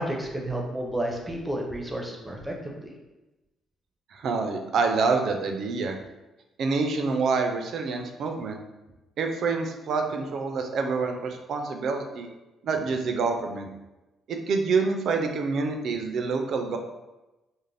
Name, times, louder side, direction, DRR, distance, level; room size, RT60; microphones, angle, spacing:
voice 1, 0.0-2.9, right 1 dB, 10° right, 1 dB, 0.5 m, -31 dB
voice 2, 4.1-6.0 6.6-8.6 9.2-12.3 12.6-13.7 14.3-16.8, right 4 dB, 65° right, 4 dB, 0.3 m, -27 dB
2.5 x 2.0 x 3.2 m, 1.0 s
cardioid pair, 90°, 0 cm